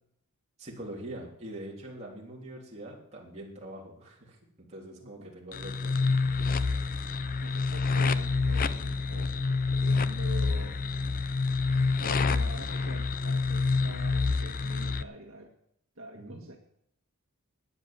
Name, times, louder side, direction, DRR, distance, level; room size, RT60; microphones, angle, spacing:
voice 1, 0.6-6.7 16.1-16.5, right 1 dB, 30° right, -3 dB, 3.4 m, -44 dB
sound 1, 5.5-15.0, left 4 dB, 40° left, 0.5 m, -28 dB
voice 2, 7.4-10.8 11.7-15.5 16.0-16.6, right 1 dB, 65° right, 0 dB, 1.9 m, -45 dB
12.0 x 9.8 x 7.4 m, 0.75 s
head